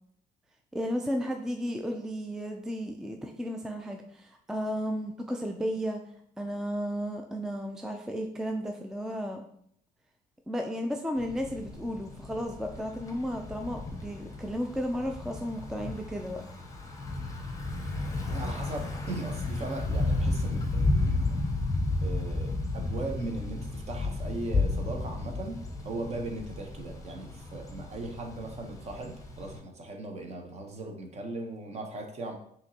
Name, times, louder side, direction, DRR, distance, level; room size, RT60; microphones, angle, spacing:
voice 1, 0.7-6.0 6.4-9.4 10.5-16.4, equal, 5° right, 3 dB, 0.3 m, -33 dB
Thunder / Bicycle, 11.2-29.6, left 2 dB, 20° left, 0.8 m, -33 dB
voice 2, 18.3-21.4 22.0-32.3, right 2 dB, 40° right, 3 dB, 0.9 m, -38 dB
5.7 x 2.9 x 2.8 m, 0.67 s
cardioid pair, 110°, 17 cm